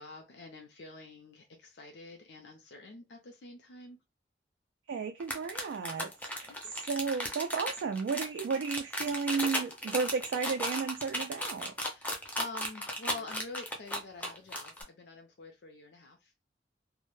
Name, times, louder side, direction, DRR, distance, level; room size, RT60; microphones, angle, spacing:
voice 1, 0.0-4.0 6.5-6.8 11.8-16.3, left 2 dB, 75° left, 0.5 m, -47 dB
voice 2, 4.9-6.5 6.9-11.7, right 5 dB, 90° right, 0.3 m, -33 dB
sound 1, 5.2-14.8, left 1 dB, 10° left, 0.4 m, -35 dB
2.1 x 2.0 x 3.0 m
head